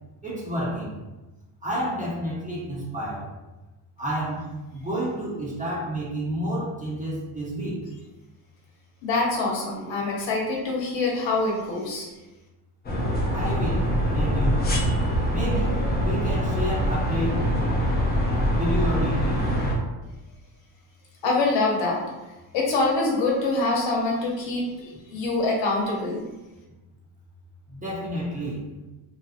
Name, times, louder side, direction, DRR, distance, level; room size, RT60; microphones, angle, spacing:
voice 1, 0.2-0.9 1.6-3.3 4.0-7.8 13.3-14.7 15.3-17.4 18.6-19.4 27.7-28.7, equal, 15° right, -6 dB, 1.0 m, -30 dB
voice 2, 9.0-12.1 21.2-22.0 22.5-26.3, left 3 dB, 60° left, -2 dB, 0.9 m, -25 dB
sound 1, 12.8-19.8, equal, 20° left, 0.5 m, -24 dB
2.8 x 2.4 x 2.5 m, 1.1 s
supercardioid pair, 90°, 49 cm